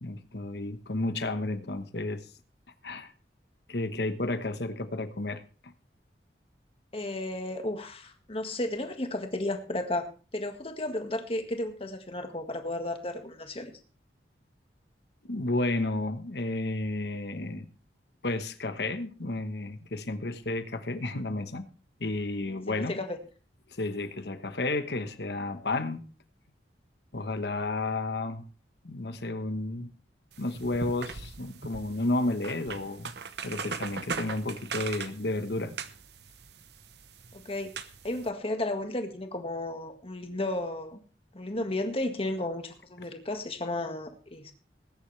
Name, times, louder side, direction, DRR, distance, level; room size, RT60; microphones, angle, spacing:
voice 1, 0.0-2.2 2.8-3.1 3.7-5.7 15.2-17.7 18.2-21.7 22.0-23.0 23.7-26.0 27.1-28.4 28.8-29.9 30.4-33.1 33.4-35.7, left 2 dB, 65° left, 10 dB, 1.2 m, -32 dB
voice 2, 6.9-13.7 22.7-23.2 37.3-37.7 38.0-41.0 41.3-44.5, left 1 dB, 35° left, 6 dB, 1.8 m, -33 dB
sound 1, 30.3-38.3, right 5 dB, 70° right, 1.0 m, -40 dB
20.0 x 10.0 x 3.3 m, 0.37 s
head